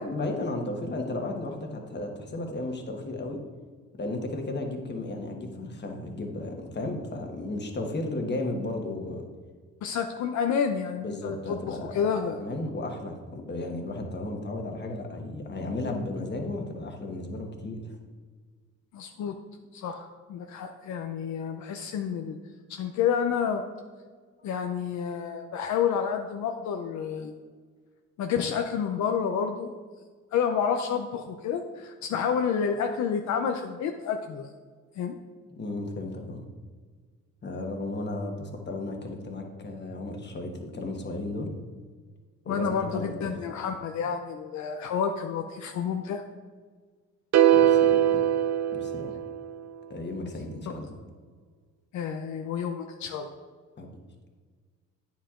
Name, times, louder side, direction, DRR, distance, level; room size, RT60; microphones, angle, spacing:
voice 1, 0.0-3.4 4.0-9.2 11.0-11.9 12.3-17.9 24.4-24.5 27.2-27.3 35.6-36.5 37.4-41.5 42.4-43.3 47.5-48.2 48.7-49.1 49.9-50.9 53.8-53.9, left 2 dB, 35° left, 2 dB, 1.2 m, -34 dB
voice 2, 9.8-12.4 18.9-19.4 19.7-22.4 22.7-23.6 24.4-27.3 28.2-29.7 30.3-34.5 35.0-35.2 42.5-46.2 50.2-50.3 51.9-53.3, left 7 dB, 70° left, 5 dB, 0.5 m, -29 dB
sound 1, 47.3-49.6, right 11 dB, 60° right, 0.5 m, -21 dB
9.0 x 7.2 x 2.5 m, 1.5 s
cardioid pair, 90°, 30 cm